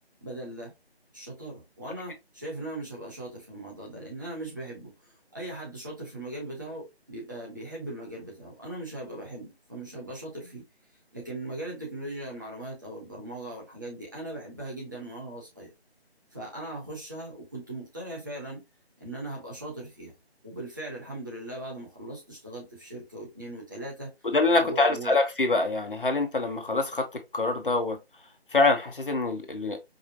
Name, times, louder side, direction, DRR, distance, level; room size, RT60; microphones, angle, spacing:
voice 1, 0.2-0.7 1.1-4.9 5.3-10.6 11.1-15.7 16.3-18.6 19.0-20.1 20.4-24.1 24.6-25.1, right 1 dB, 20° right, 0.9 m, -39 dB
voice 2, 24.2-27.0 27.3-28.0 28.5-29.8, left 3 dB, 55° left, 0.8 m, -25 dB
4.9 x 2.1 x 2.7 m
figure-of-eight pair, 160°, 32 cm